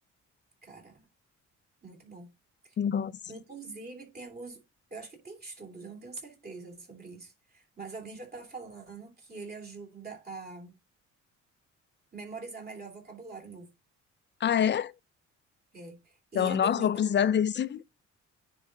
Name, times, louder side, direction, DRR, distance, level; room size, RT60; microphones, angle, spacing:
voice 1, 0.6-1.0 1.8-2.3 2.6-2.7 3.3-4.6 4.9-10.7 12.1-13.7 15.7-16.9, right 4 dB, 30° right, 3.0 m, -44 dB
voice 2, 2.8-3.1 14.4-14.9 16.3-17.8, left 8 dB, 40° left, 0.4 m, -26 dB
9.7 x 3.9 x 3.8 m
cardioid pair, 90°, 30 cm